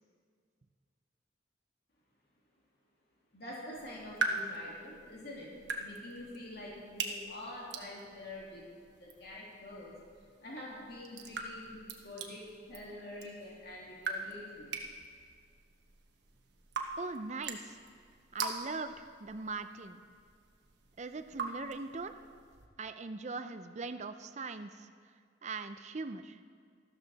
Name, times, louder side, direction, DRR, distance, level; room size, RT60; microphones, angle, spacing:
voice 1, 3.3-5.5 5.8-8.7 9.0-9.9 10.4-14.7, left 1 dB, 55° left, -5 dB, 2.5 m, -46 dB
sound 1, 3.7-22.7, right 4 dB, 60° right, 1.1 m, -43 dB
voice 2, 17.0-17.8 18.3-20.0 21.0-22.1 22.8-24.9 25.4-26.4, right 3 dB, 35° right, 9 dB, 0.5 m, -41 dB
13.5 x 13.0 x 4.1 m, 2.1 s
head